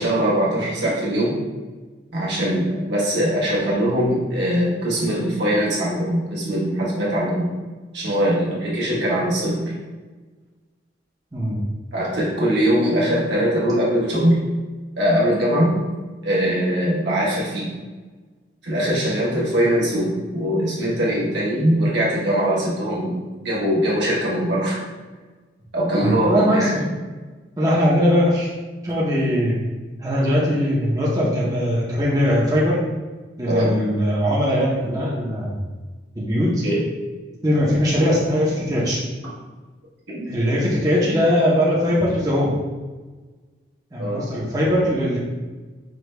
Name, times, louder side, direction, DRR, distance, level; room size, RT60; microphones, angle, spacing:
voice 1, 0.0-1.3 2.1-7.5 7.9-9.7 11.9-14.4 15.0-15.7 16.2-17.7 18.6-24.8 25.7-26.7 33.4-33.7 36.6-36.8 40.1-40.3 44.0-44.2, equal, 70° right, -6 dB, 1.2 m, -21 dB
voice 2, 26.0-26.9 27.6-28.5 28.8-29.6 30.0-32.8 33.4-35.6 36.1-36.6 37.4-39.0 40.3-42.5 43.9-45.2, equal, 20° right, -7 dB, 0.6 m, -20 dB
5.1 x 2.2 x 3.2 m, 1.3 s
head